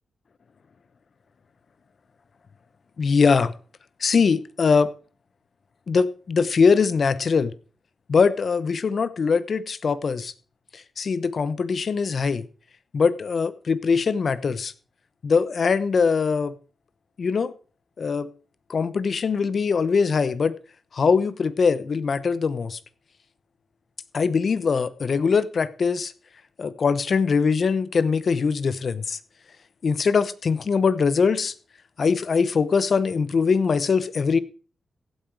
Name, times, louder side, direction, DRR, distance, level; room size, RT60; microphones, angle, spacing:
voice 1, 3.0-3.5 4.0-4.9 5.9-7.5 8.1-10.3 10.7-12.4 12.9-14.7 15.2-16.5 17.2-17.5 18.0-18.3 18.7-20.6 20.9-22.8 24.1-26.1 26.6-29.2 29.8-31.5 32.0-34.4, left 5 dB, 55° left, 1.0 m, -22 dB
15.5 x 8.9 x 4.7 m
cardioid pair, 100°, 0 cm